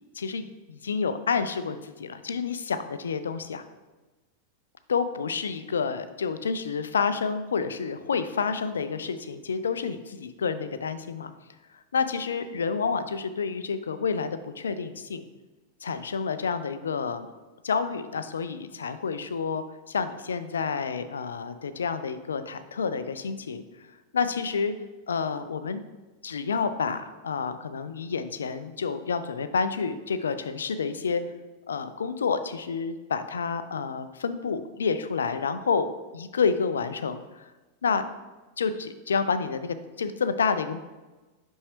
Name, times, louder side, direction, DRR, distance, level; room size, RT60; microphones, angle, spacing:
voice 1, 0.1-3.6 4.9-11.3 11.9-15.2 15.8-17.3 17.6-23.6 24.1-24.7 25.1-25.8 26.2-31.2 31.7-37.5 37.8-38.0 38.6-40.8, left 5 dB, 70° left, 11 dB, 0.3 m, -29 dB
5.6 x 5.4 x 3.1 m, 1.2 s
figure-of-eight pair, 90°, 0 cm